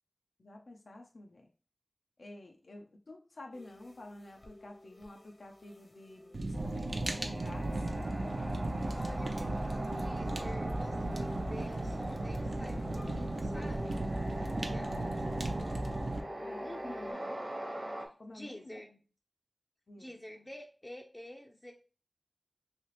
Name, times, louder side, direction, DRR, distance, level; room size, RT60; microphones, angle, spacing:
voice 1, 0.4-1.5 2.2-7.9 15.2-15.7 16.4-17.4 18.2-18.8 19.9-20.1, left 1 dB, 85° left, 2 dB, 0.5 m, -50 dB
sound 1, 3.5-17.1, left 1 dB, 50° left, 0.8 m, -50 dB
Fire, 6.3-16.2, right 2 dB, 70° right, 0.4 m, -36 dB
sound 2, 6.5-18.1, right 1 dB, 40° right, 0.7 m, -42 dB
voice 2, 8.9-14.0 14.7-15.5 16.6-17.3 18.0-19.0 20.0-21.7, left 1 dB, 20° left, 1 dB, 0.4 m, -48 dB
3.2 x 2.8 x 2.9 m, 0.37 s
wide cardioid pair, 55°, 0 cm